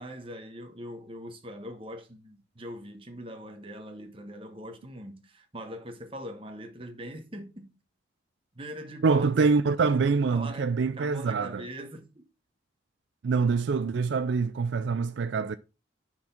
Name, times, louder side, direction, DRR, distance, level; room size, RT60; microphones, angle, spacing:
voice 1, 0.0-7.7 8.5-10.0 10.3-12.3, equal, 30° right, 1.2 m, -42 dB
voice 2, 9.0-11.6 13.2-15.6, right 4 dB, 70° right, 0.4 m, -25 dB
6.0 x 4.4 x 5.8 m
head